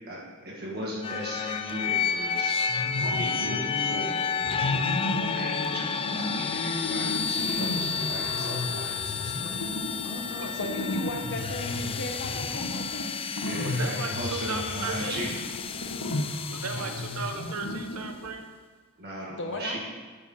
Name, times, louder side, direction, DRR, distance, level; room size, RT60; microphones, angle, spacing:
voice 1, 0.0-2.6 3.1-9.5 13.4-15.3 16.7-16.9 19.0-19.8, equal, 45° right, -4 dB, 1.4 m, -37 dB
sound 1, 1.0-17.8, left 6 dB, 25° left, 0.3 m, -31 dB
sound 2, 2.7-4.0 4.4-18.3, left 1 dB, 85° left, 1.0 m, -34 dB
sound 3, 6.5-12.8, equal, ahead, 0.8 m, -48 dB
voice 2, 10.0-13.1 19.3-19.8, left 1 dB, 55° left, 2 dB, 1.0 m, -36 dB
voice 3, 13.6-15.2 16.5-18.5, right 4 dB, 90° right, 5 dB, 0.9 m, -36 dB
8.9 x 4.8 x 7.0 m, 1.5 s
head